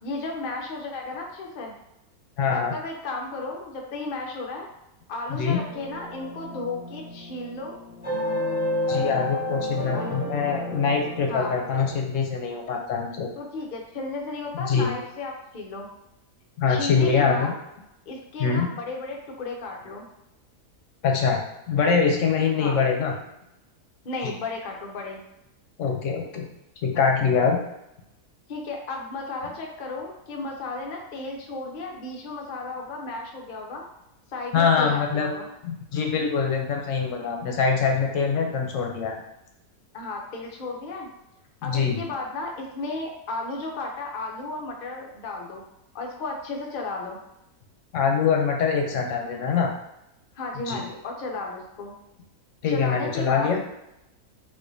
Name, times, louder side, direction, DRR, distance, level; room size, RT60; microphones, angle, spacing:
voice 1, 0.0-1.7 2.5-4.7 5.1-7.8 9.9-10.3 11.3-11.6 13.4-15.9 16.7-17.5 18.1-20.1 22.6-22.8 24.0-25.2 28.5-33.8 34.3-35.4 39.9-41.1 41.6-45.6 45.9-47.2 50.3-52.0 52.7-53.6, left 3 dB, 85° left, 0 dB, 0.4 m, -34 dB
voice 2, 2.4-2.7 5.3-5.6 8.9-13.3 14.6-14.9 16.6-17.5 18.4-18.7 21.0-21.4 21.7-23.1 24.2-24.3 25.8-26.5 26.8-27.6 34.5-35.3 35.6-39.2 41.6-42.0 47.9-49.7 50.7-50.8 52.6-53.6, left 5 dB, 65° left, 2 dB, 0.8 m, -23 dB
sound 1, 5.6-12.0, left 1 dB, 10° right, 0.6 m, -31 dB
4.2 x 2.6 x 2.6 m, 0.87 s
omnidirectional pair, 1.6 m